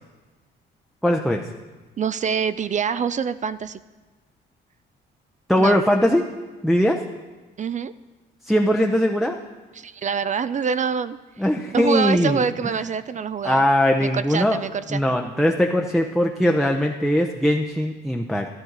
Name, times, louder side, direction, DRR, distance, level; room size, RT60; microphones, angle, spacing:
voice 1, 1.0-1.4 5.5-6.2 6.6-7.0 8.5-9.4 11.4-12.7 13.4-14.6 14.9-18.5, equal, ahead, 2 dB, 0.7 m, -20 dB
voice 2, 2.0-3.8 5.6-5.8 7.6-7.9 9.7-11.2 11.7-13.6 14.0-15.0, right 6 dB, 40° right, 14 dB, 0.4 m, -25 dB
12.5 x 12.0 x 4.0 m, 1.3 s
cardioid pair, 90°, 20 cm